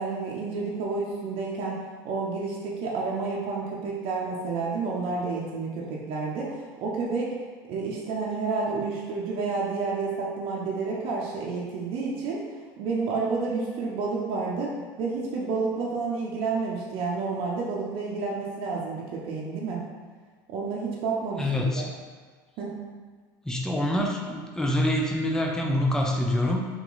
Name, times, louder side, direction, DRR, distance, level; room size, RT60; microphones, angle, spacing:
voice 1, 0.0-1.8 2.0-7.3 7.7-12.4 12.8-19.8 20.5-21.9 22.6-22.7, right 4 dB, 55° right, -4 dB, 0.7 m, -30 dB
voice 2, 21.4-21.8 23.5-26.7, left 1 dB, 5° left, -1 dB, 0.5 m, -26 dB
3.0 x 2.9 x 3.8 m, 1.5 s
supercardioid pair, 95°, 11 cm